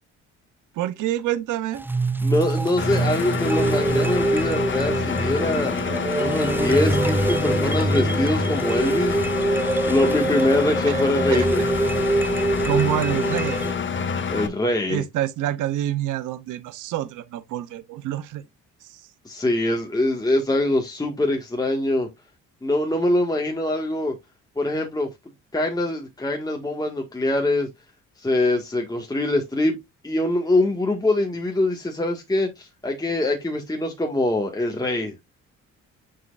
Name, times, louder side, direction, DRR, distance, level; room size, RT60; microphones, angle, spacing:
voice 1, 0.7-1.8 10.9-11.5 12.6-13.7 14.9-18.4 18.8-19.0, right 12 dB, 85° right, 0.8 m, -27 dB
sound 1, 1.7-13.7, right 2 dB, 5° right, 0.5 m, -24 dB
voice 2, 2.2-5.7 6.2-9.2 9.9-11.6 14.3-15.0 19.3-22.1 22.6-24.2 24.6-25.1 25.5-27.7 28.2-29.8 30.0-35.1, left 1 dB, 15° left, 1.8 m, -23 dB
Engine, 2.8-14.5, left 6 dB, 40° left, 1.7 m, -27 dB
7.5 x 6.4 x 2.5 m
cardioid pair, 90°, 30 cm